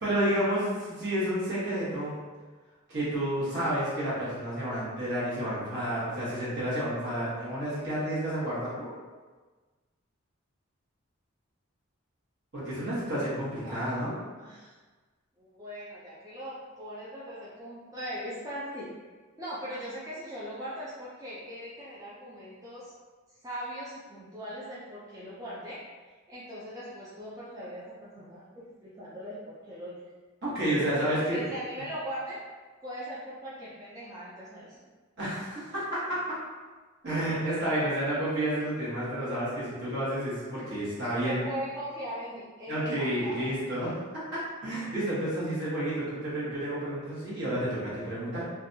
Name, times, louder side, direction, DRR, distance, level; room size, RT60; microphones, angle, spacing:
voice 1, 0.0-2.2 2.9-8.9 12.5-14.1 30.4-31.5 35.2-36.2 37.0-41.5 42.7-43.9 44.3-48.4, right 1 dB, 55° right, -10 dB, 1.2 m, -30 dB
voice 2, 13.6-14.7 15.4-18.9 19.4-22.9 23.4-25.8 26.3-30.0 30.9-32.4 32.8-34.8 41.2-43.7, equal, 15° right, -9 dB, 0.4 m, -40 dB
2.5 x 2.2 x 2.6 m, 1.4 s
head